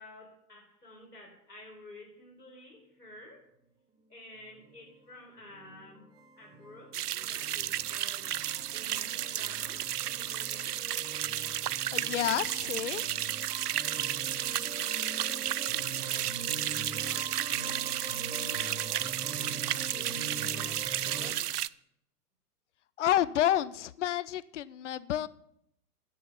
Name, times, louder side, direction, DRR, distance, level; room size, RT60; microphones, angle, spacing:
voice 1, 0.0-3.5 4.1-6.1 6.3-8.3 8.7-10.8 15.1-16.4 16.9-17.3 17.9-21.5, left 1 dB, 90° left, 0 dB, 5.0 m, -52 dB
sound 1, 4.4-21.3, right 3 dB, 10° right, 1.0 m, -44 dB
sound 2, 6.9-21.7, right 11 dB, 75° right, 0.5 m, -33 dB
voice 2, 11.9-13.0 23.0-25.3, left 12 dB, 50° left, 19 dB, 0.6 m, -29 dB
10.0 x 7.9 x 6.8 m, 0.75 s
figure-of-eight pair, 120°, 47 cm